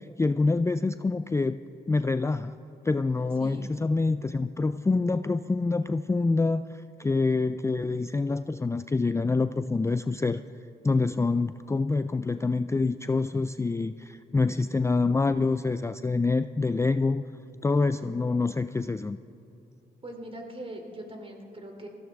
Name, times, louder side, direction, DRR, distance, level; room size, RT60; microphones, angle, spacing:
voice 1, 0.0-1.6 1.9-2.6 2.8-10.4 10.8-17.2 17.6-19.2, left 3 dB, 15° left, 12 dB, 0.4 m, -26 dB
voice 2, 3.4-3.7 20.0-21.9, right 1 dB, 30° right, 3 dB, 3.1 m, -41 dB
20.0 x 15.5 x 3.6 m, 2.9 s
cardioid pair, 65°, 19 cm